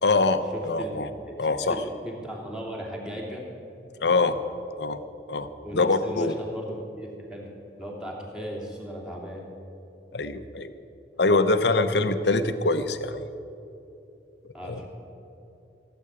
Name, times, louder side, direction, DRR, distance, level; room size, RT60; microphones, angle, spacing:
voice 1, 0.0-1.1 1.4-1.8 4.0-4.4 4.8-5.0 5.3-6.3 10.1-10.7 11.2-13.3 14.6-14.8, left 3 dB, 75° left, 10 dB, 0.8 m, -24 dB
voice 2, 0.5-0.9 1.3-1.4 1.7-3.4 5.6-7.5 7.8-9.4 14.5-14.9, equal, 5° right, -3 dB, 2.8 m, -37 dB
17.0 x 8.1 x 9.9 m, 2.8 s
head